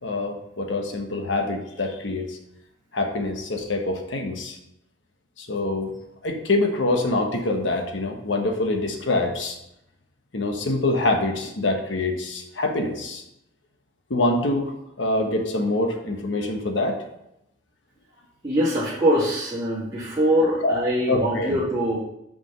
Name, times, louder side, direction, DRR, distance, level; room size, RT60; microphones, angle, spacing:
voice 1, 0.0-2.4 2.9-4.6 5.4-5.9 6.2-9.6 10.3-13.2 14.1-17.0 20.6-20.8 21.1-21.6, left 2 dB, 85° left, 3 dB, 1.2 m, -25 dB
voice 2, 18.4-22.0, equal, 25° right, -11 dB, 2.0 m, -23 dB
6.0 x 5.2 x 5.8 m, 0.82 s
head